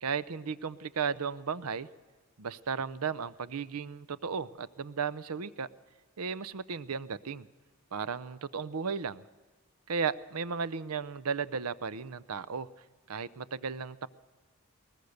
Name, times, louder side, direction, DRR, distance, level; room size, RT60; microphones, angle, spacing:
voice 1, 0.0-1.9 2.4-5.7 6.2-7.5 7.9-9.2 9.9-12.7 13.1-14.1, right 6 dB, 90° right, 17 dB, 0.7 m, -35 dB
21.5 x 19.0 x 6.6 m, 1.3 s
head